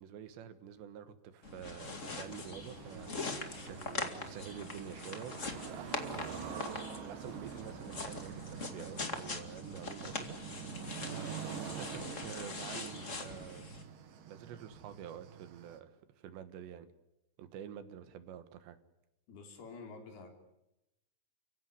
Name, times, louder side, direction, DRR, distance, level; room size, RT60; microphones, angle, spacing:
voice 1, 0.0-3.4 3.7-10.6 11.7-13.6 14.3-16.9 17.4-18.8, right 9 dB, 85° right, 11 dB, 3.7 m, -48 dB
sound 1, 1.4-13.8, left 3 dB, 30° left, 1.4 m, -42 dB
sound 2, 1.8-15.8, right 8 dB, 60° right, 3.0 m, -46 dB
voice 2, 19.3-20.3, left 4 dB, 65° left, 4 dB, 5.5 m, -49 dB
30.0 x 16.5 x 9.9 m, 0.91 s
omnidirectional pair, 4.9 m